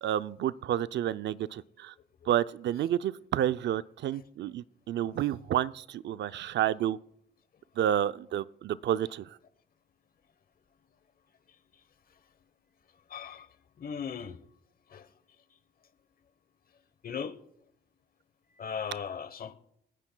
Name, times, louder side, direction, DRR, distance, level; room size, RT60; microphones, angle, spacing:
voice 1, 0.0-1.9 2.3-7.0 7.8-9.4, right 11 dB, 65° right, 0.5 m, -30 dB
voice 2, 13.1-13.5 13.8-14.4 14.9-15.1 17.0-17.4 18.6-19.6, left 7 dB, 45° left, 1.1 m, -37 dB
29.5 x 9.9 x 2.3 m
cardioid pair, 90°, 20 cm